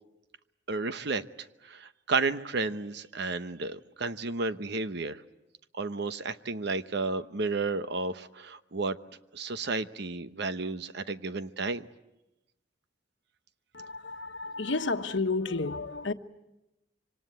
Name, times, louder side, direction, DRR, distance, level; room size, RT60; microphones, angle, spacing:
voice 1, 0.7-1.2 1.7-5.2 5.7-9.0 9.3-11.9, right 3 dB, 65° right, 1.0 m, -32 dB
voice 2, 13.7-16.1, left 3 dB, 80° left, 1.2 m, -31 dB
26.5 x 24.5 x 8.2 m
head